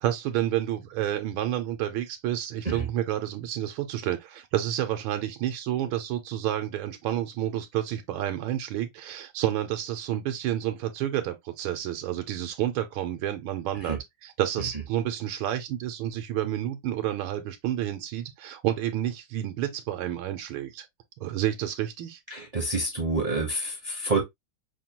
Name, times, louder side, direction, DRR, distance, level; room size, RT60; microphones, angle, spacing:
voice 1, 0.0-20.9 21.2-22.2, right 12 dB, 85° right, 1.4 m, -30 dB
voice 2, 22.3-24.2, right 3 dB, 40° right, 0.5 m, -28 dB
5.6 x 2.2 x 2.8 m
omnidirectional pair, 2.2 m